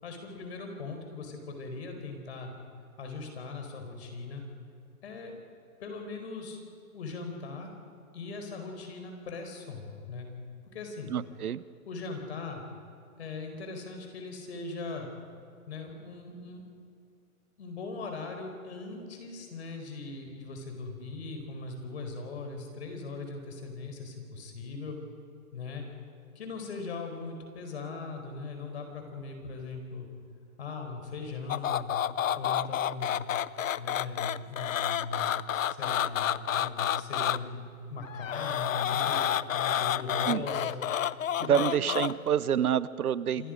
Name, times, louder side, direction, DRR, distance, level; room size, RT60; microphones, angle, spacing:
voice 1, 0.0-2.5 3.0-4.4 5.0-5.3 5.8-6.6 6.9-7.7 8.1-10.3 10.7-11.1 11.8-12.6 13.2-15.1 15.7-16.6 17.6-25.0 25.5-25.9 26.3-30.1 30.6-32.0 32.3-33.3 33.8-35.4 35.7-37.6 37.9-39.2 39.5-40.8 41.3-41.7 43.4-43.5, left 3 dB, 45° left, 4 dB, 4.7 m, -39 dB
voice 2, 11.1-11.6 40.3-40.5 41.5-43.5, right 9 dB, 80° right, 17 dB, 0.9 m, -27 dB
sound 1, 31.5-37.4 38.0-42.3, left 10 dB, 65° left, 0.7 m, -29 dB
27.0 x 22.5 x 5.2 m, 2.4 s
hypercardioid pair, 170°, 43 cm